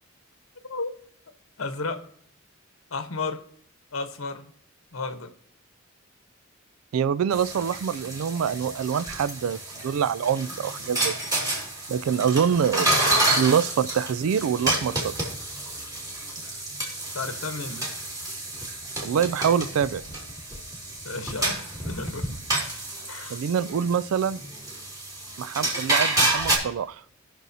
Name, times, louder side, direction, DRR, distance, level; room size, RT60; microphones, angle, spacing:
voice 1, 1.6-2.0 2.9-3.4 3.9-4.5 4.9-5.3 16.4-16.6 17.1-17.9 21.0-22.4 23.0-23.4, left 3 dB, 85° left, 8 dB, 1.0 m, -33 dB
voice 2, 6.9-11.1 11.9-15.1 19.0-20.0 23.3-24.4 25.4-27.0, right 7 dB, 90° right, 17 dB, 0.3 m, -25 dB
sound 1, 7.3-26.6, right 1 dB, 15° right, 2.3 m, -29 dB
18.5 x 6.2 x 2.7 m, 0.64 s
head